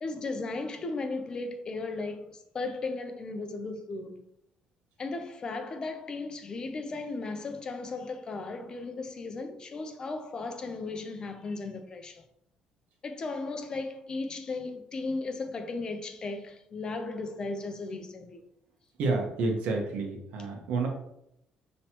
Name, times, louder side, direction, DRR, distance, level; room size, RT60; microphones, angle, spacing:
voice 1, 0.0-4.2 5.0-12.2 13.0-18.4, left 3 dB, 30° left, 0.5 m, -36 dB
voice 2, 19.0-20.9, right 3 dB, 80° right, 1.1 m, -29 dB
5.8 x 3.1 x 2.9 m
cardioid pair, 145°, 3 cm